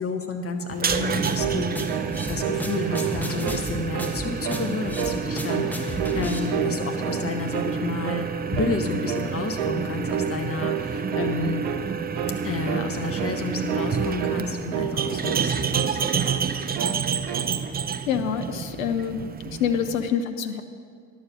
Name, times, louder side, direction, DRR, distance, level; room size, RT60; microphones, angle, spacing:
voice 1, 0.0-1.8 2.3-11.6 12.4-16.6, left 4 dB, 35° left, 5 dB, 1.4 m, -31 dB
sound 1, 0.7-20.1, right 6 dB, 25° right, 0.5 m, -29 dB
sound 2, 0.9-6.4, equal, 5° left, 1.5 m, -34 dB
sound 3, 1.4-1.6 1.9-2.1 2.4-3.6 3.9-4.2 4.4-4.7 5.0-5.2 5.5-6.2 6.5-7.3 7.5-7.8 8.0-8.3 8.5-8.8 9.1-9.3 9.6-9.8 10.1-10.3 10.6-10.8 11.1-11.4 11.6-11.8 12.2-12.4 12.7-12.9 13.2-13.4 13.7-14.4 14.7-15.5 15.7-16.5 16.8-17.5, right 9 dB, 70° right, 0.8 m, -30 dB
voice 2, 18.1-19.2 19.5-20.6, left 8 dB, 85° left, 8 dB, 0.6 m, -26 dB
11.0 x 7.2 x 6.3 m, 2.1 s
figure-of-eight pair, 45°, 39 cm